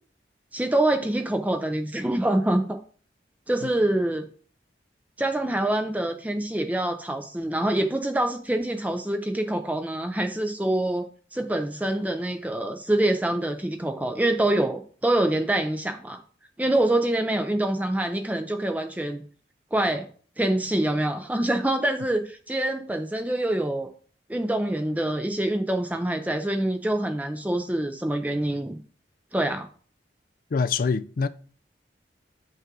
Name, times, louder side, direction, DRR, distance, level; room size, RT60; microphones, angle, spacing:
voice 1, 0.5-2.8 3.5-4.3 5.2-11.1 11.3-16.2 16.6-19.2 19.7-20.1 20.4-23.9 24.3-28.8 29.3-29.7, right 1 dB, 10° right, 0.5 m, -25 dB
voice 2, 30.5-31.3, left 5 dB, 50° left, 0.4 m, -25 dB
7.4 x 5.5 x 3.7 m
head